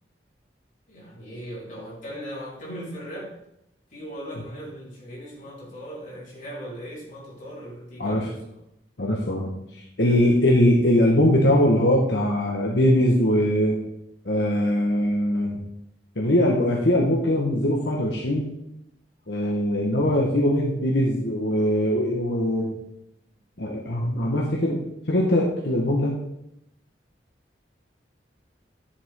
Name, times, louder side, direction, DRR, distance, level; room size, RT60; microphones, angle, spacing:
voice 1, 0.9-3.3 3.9-8.6, equal, 45° left, -6 dB, 4.0 m, -38 dB
voice 2, 9.0-13.8 14.2-15.6 16.2-18.5 19.3-22.7 23.6-24.8 25.1-26.1, left 1 dB, 80° left, -2 dB, 1.4 m, -21 dB
10.5 x 7.2 x 3.7 m, 0.80 s
head